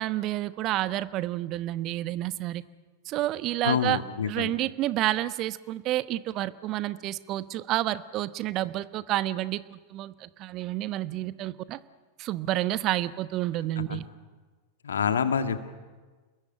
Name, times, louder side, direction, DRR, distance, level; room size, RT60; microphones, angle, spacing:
voice 1, 0.0-2.6 3.1-4.0 4.3-11.8 12.2-14.1, right 15 dB, 35° right, 15 dB, 1.0 m, -29 dB
voice 2, 3.6-4.5 13.9-14.0 14.8-15.6, left 7 dB, 70° left, 9 dB, 1.8 m, -27 dB
29.5 x 21.0 x 9.0 m, 1.4 s
figure-of-eight pair, 90°, 0 cm